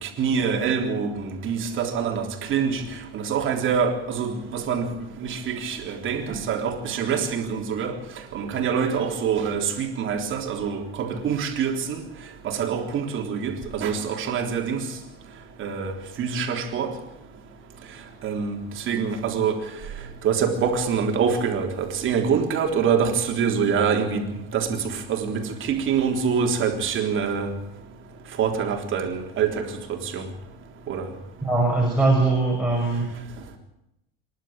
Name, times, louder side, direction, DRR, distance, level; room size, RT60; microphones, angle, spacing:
voice 1, 0.0-2.8 3.1-4.9 5.2-8.0 8.3-12.0 12.4-14.9 15.6-16.9 18.2-18.6 18.9-19.6 20.2-24.3 24.5-27.5 28.4-30.3 30.9-31.1, right 6 dB, 40° right, 3.8 m, -25 dB
voice 2, 31.4-33.1, right 3 dB, 5° right, 6.2 m, -21 dB
26.5 x 11.5 x 9.0 m
supercardioid pair, 110°, 30 cm